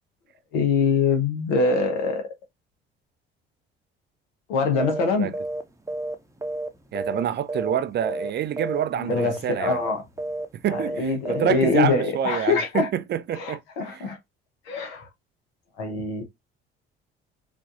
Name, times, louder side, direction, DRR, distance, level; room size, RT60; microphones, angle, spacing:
voice 1, 0.5-2.2 4.5-5.3 8.9-10.0 10.7-12.9 13.3-14.2 14.7-15.0 15.8-16.2, left 4 dB, 70° left, 1.1 m, -24 dB
sound 1, 4.8-5.1 5.3-5.6 5.9-7.2 7.5-8.3 8.6-8.8 9.1-9.4 9.6-9.9 10.2-10.4 10.7-11.0 11.2-11.5, right 2 dB, 10° right, 0.7 m, -30 dB
voice 2, 6.9-9.8 10.6-14.1, right 10 dB, 35° right, 0.4 m, -27 dB
4.9 x 2.5 x 2.6 m
figure-of-eight pair, 50°, 29 cm